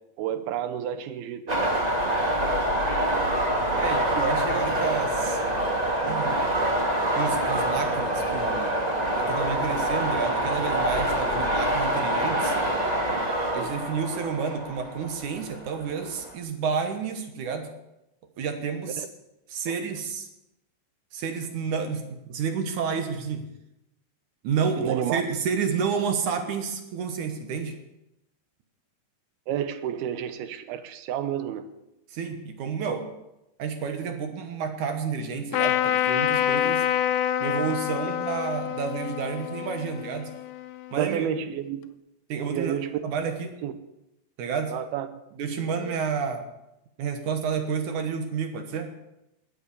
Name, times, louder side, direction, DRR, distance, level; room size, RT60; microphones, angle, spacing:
voice 1, 0.2-1.8 6.0-6.1 13.6-13.7 19.0-19.1 24.8-25.2 29.5-31.7 40.9-41.8 42.5-43.0 43.6-43.7 44.7-45.1 45.8-46.0, right 10 dB, 85° right, 12 dB, 2.8 m, -30 dB
sound 1, 1.5-16.3, right 1 dB, 35° right, 0.6 m, -26 dB
voice 2, 3.7-5.4 6.0-6.4 7.2-8.8 9.2-12.6 13.5-17.7 18.4-19.1 19.5-20.3 21.1-23.5 24.4-27.8 32.1-33.1 33.6-36.9 37.4-40.3 40.9-41.3 42.3-42.7 43.0-43.6 44.4-44.7 45.4-46.4 47.0-48.9, right 6 dB, 65° right, 6 dB, 2.4 m, -30 dB
Trumpet, 35.5-41.0, left 11 dB, 90° left, 2.7 m, -27 dB
21.0 x 7.9 x 7.0 m, 0.89 s
omnidirectional pair, 4.3 m